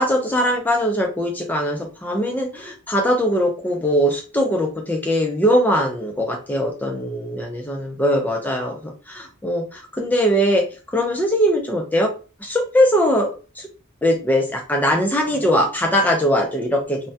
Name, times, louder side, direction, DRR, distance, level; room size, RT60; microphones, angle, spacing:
voice 1, 0.0-10.6 10.9-12.1 12.4-13.3 13.6-13.7 14.0-17.1, equal, 10° left, 1 dB, 0.4 m, -21 dB
2.2 x 2.1 x 2.6 m, 0.34 s
head